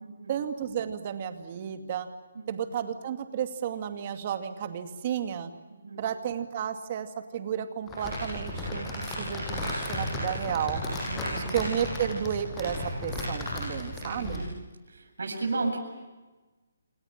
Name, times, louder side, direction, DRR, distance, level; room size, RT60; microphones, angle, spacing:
voice 1, 0.3-2.1 2.5-5.5 6.0-10.8 11.3-14.5, right 9 dB, 30° right, 8 dB, 2.4 m, -32 dB
Crumpling crinkling, 7.9-14.5, left 1 dB, 10° left, 7.5 m, -34 dB
voice 2, 11.1-11.6 14.0-14.5 14.9-15.8, right 3 dB, 80° right, 2 dB, 8.0 m, -33 dB
28.0 x 27.0 x 7.4 m, 1.2 s
hypercardioid pair, 170°, 0 cm